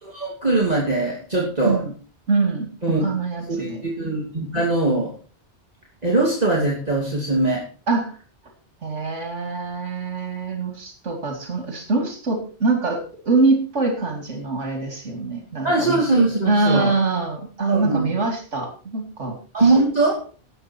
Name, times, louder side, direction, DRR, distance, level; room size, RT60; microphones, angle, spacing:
voice 1, 0.0-1.8 2.8-3.0 3.5-5.1 6.0-7.6 15.6-16.9 17.7-18.1 19.5-20.2, right 2 dB, 35° right, -3 dB, 2.9 m, -21 dB
voice 2, 2.3-2.7 3.0-3.8 7.9-8.1 8.8-16.0 16.5-19.8, right 3 dB, 85° right, 3 dB, 3.0 m, -24 dB
18.5 x 7.7 x 4.5 m, 0.38 s
omnidirectional pair, 1.2 m